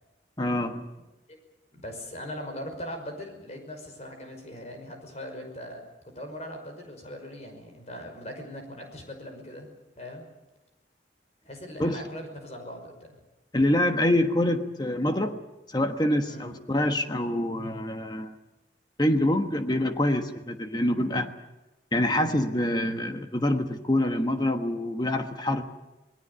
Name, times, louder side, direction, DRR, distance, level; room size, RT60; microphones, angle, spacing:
voice 1, 0.4-0.9 11.8-12.0 13.5-15.4 15.7-18.3 19.0-21.3 21.9-25.6, left 1 dB, 25° left, 7 dB, 1.3 m, -25 dB
voice 2, 1.7-5.8 6.2-10.3 11.4-13.2 16.2-16.5, equal, 40° left, 4 dB, 5.5 m, -40 dB
28.0 x 20.0 x 6.9 m, 1.0 s
head